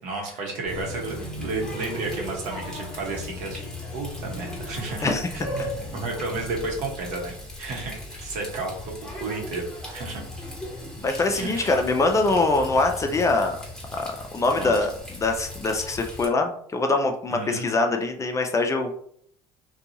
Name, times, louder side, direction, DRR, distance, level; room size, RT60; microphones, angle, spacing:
voice 1, 0.0-3.6 3.9-7.9 8.2-10.2 11.3-11.8 14.5-14.7 17.3-17.7, right 3 dB, 65° right, 0 dB, 0.9 m, -32 dB
Water tap faucet, 0.6-16.3, left 1 dB, 5° left, 1.0 m, -37 dB
voice 2, 11.0-13.6 13.9-18.9, left 3 dB, 25° left, 4 dB, 0.4 m, -23 dB
2.6 x 2.3 x 2.8 m, 0.64 s
supercardioid pair, 85°, 13 cm